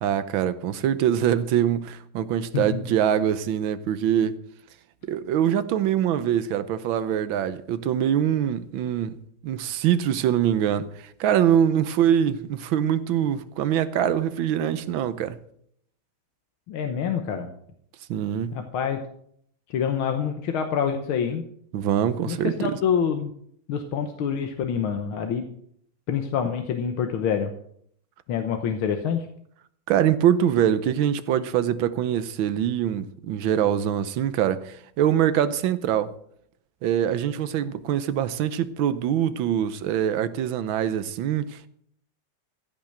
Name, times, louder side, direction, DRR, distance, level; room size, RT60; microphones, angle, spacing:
voice 1, 0.0-4.4 5.0-15.4 18.1-18.6 21.7-22.8 29.9-36.1 36.8-41.7, right 10 dB, 70° right, 1.5 m, -24 dB
voice 2, 16.7-17.5 18.5-19.0 19.7-21.4 22.2-23.3 23.7-25.4 26.1-27.5 28.3-29.3, left 7 dB, 75° left, 1.8 m, -26 dB
15.0 x 6.1 x 7.8 m
omnidirectional pair, 2.4 m